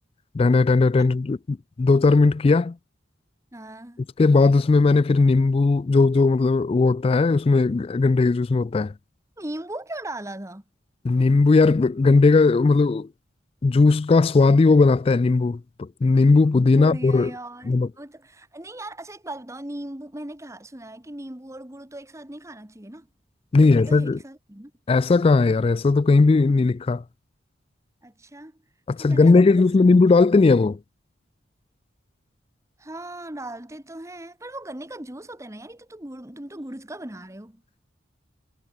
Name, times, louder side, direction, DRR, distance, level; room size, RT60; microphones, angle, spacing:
voice 1, 0.3-2.7 4.2-8.9 11.0-13.1 13.6-17.3 17.7-17.9 23.5-24.2 24.9-27.0 28.9-30.8, left 3 dB, 30° left, 0.3 m, -18 dB
voice 2, 3.5-4.1 9.4-10.6 16.6-23.1 23.5-24.7 28.0-28.6 29.0-30.1 32.8-37.6, right 1 dB, 15° right, 1.6 m, -38 dB
head